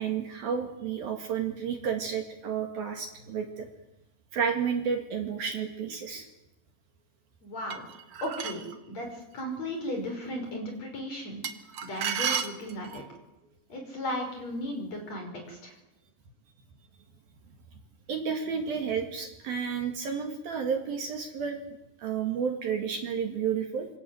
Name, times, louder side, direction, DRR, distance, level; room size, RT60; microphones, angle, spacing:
voice 1, 0.0-3.7 4.3-6.3 18.1-21.6 22.0-23.9, right 7 dB, 60° right, 4 dB, 3.5 m, -31 dB
voice 2, 7.4-7.8 8.2-11.4 11.8-13.0 13.7-15.7, equal, 35° left, 3 dB, 6.2 m, -36 dB
sound 1, 7.7-8.7 11.4-13.1, right 8 dB, 75° right, 1.4 m, -32 dB
27.0 x 24.5 x 7.9 m, 0.95 s
omnidirectional pair, 5.3 m